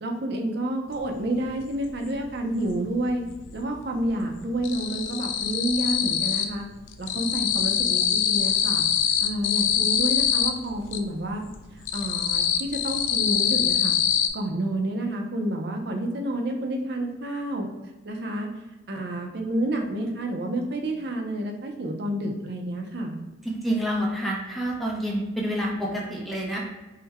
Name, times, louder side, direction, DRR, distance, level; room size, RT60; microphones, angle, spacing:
voice 1, 0.0-3.2 3.5-6.6 7.0-8.8 9.2-11.4 11.7-14.0 14.3-17.7 18.0-18.5 18.9-23.2, right 1 dB, 60° right, 2 dB, 0.6 m, -29 dB
sound 1, 1.0-1.1 1.4-2.7 3.0-3.7 3.9-6.6 6.9-11.0 11.5-14.3, left 8 dB, 75° left, 0.4 m, -24 dB
voice 2, 23.4-26.6, equal, ahead, -3 dB, 0.6 m, -28 dB
3.8 x 2.2 x 4.2 m, 1.1 s
head